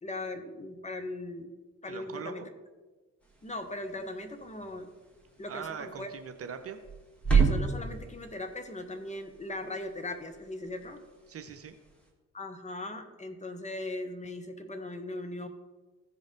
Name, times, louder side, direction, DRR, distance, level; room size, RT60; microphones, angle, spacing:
voice 1, 0.0-1.6 1.8-2.5 3.4-4.9 5.4-6.1 7.3-11.0 12.3-15.5, left 2 dB, 20° left, 6 dB, 1.1 m, -39 dB
voice 2, 1.9-2.5 5.5-6.8 11.3-11.8, right 7 dB, 40° right, 7 dB, 0.8 m, -41 dB
sound 1, 3.2-12.1, right 5 dB, 5° left, 2.2 m, -34 dB
15.0 x 5.2 x 3.8 m, 1.3 s
figure-of-eight pair, 40°, 38 cm